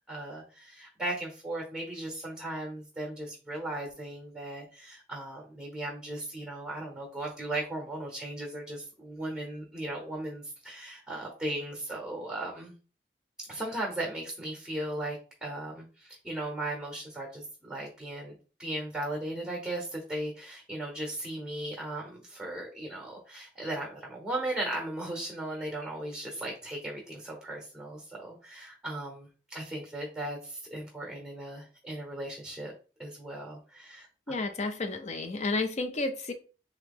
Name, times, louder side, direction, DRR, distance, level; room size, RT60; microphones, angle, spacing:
voice 1, 0.1-12.7 13.5-32.7 33.0-34.1, right 1 dB, 5° right, 0.9 m, -37 dB
voice 2, 34.3-36.3, left 3 dB, 40° left, 0.6 m, -31 dB
3.8 x 3.0 x 3.6 m
head